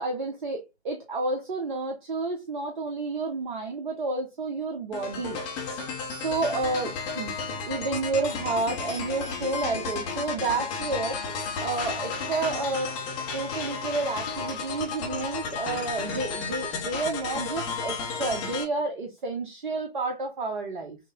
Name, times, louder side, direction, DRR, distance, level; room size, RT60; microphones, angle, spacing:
voice 1, 0.0-5.4 5.7-7.3 7.7-12.9 13.3-21.0, right 3 dB, 45° right, 1.0 m, -30 dB
sound 1, 4.9-18.6, left 5 dB, 10° left, 0.6 m, -33 dB
6.3 x 2.1 x 3.6 m
figure-of-eight pair, 135°, 33 cm